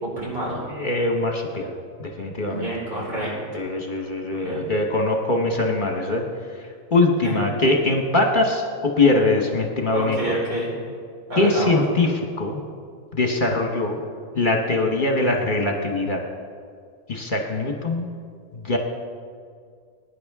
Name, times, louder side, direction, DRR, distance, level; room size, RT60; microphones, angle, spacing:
voice 1, 0.0-0.6 2.4-3.6 4.4-4.7 7.2-7.3 9.9-10.7 11.3-11.8, right 1 dB, 85° right, -5 dB, 4.9 m, -28 dB
voice 2, 0.8-1.7 2.0-2.7 3.5-6.2 6.9-10.2 11.4-12.6 13.1-14.0 14.3-16.2 17.1-18.1 18.5-18.8, left 2 dB, 40° left, 2 dB, 1.2 m, -22 dB
21.5 x 10.0 x 3.6 m, 2.1 s
omnidirectional pair, 1.4 m